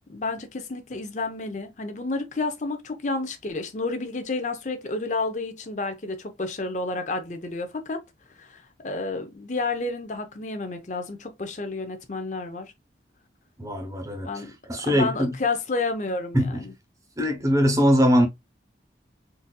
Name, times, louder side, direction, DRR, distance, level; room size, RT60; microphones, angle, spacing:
voice 1, 0.1-8.0 8.4-12.7 14.2-14.5 14.8-16.7, left 3 dB, 40° left, 0.6 m, -30 dB
voice 2, 13.6-14.3 14.7-15.3 16.3-16.6 17.2-18.3, equal, 15° right, 0.8 m, -21 dB
3.9 x 2.7 x 2.2 m
head